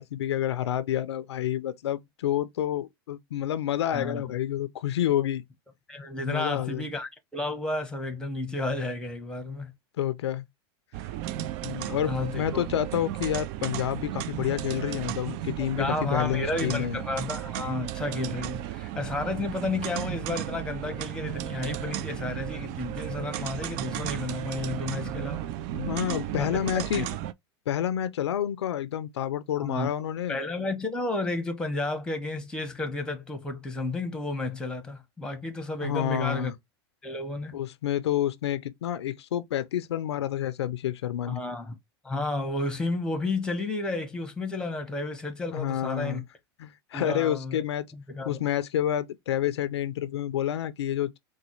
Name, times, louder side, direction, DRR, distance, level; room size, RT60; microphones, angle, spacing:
voice 1, 0.0-5.4 6.2-6.9 10.0-10.4 11.6-17.0 25.7-27.1 27.7-30.4 35.8-36.5 37.5-41.4 45.5-46.2 46.6-47.9 48.2-51.2, left 11 dB, 90° left, 0.4 m, -29 dB
voice 2, 5.9-9.7 12.0-12.6 15.6-25.5 26.4-26.5 26.7-27.1 29.6-29.9 30.3-36.5 37.0-37.5 41.3-41.7 42.0-46.2 46.9-47.6 47.9-48.4, left 2 dB, 5° left, 0.9 m, -32 dB
sound 1, 10.9-27.3, right 13 dB, 55° right, 0.4 m, -34 dB
3.9 x 2.2 x 3.0 m
hypercardioid pair, 100°, 14 cm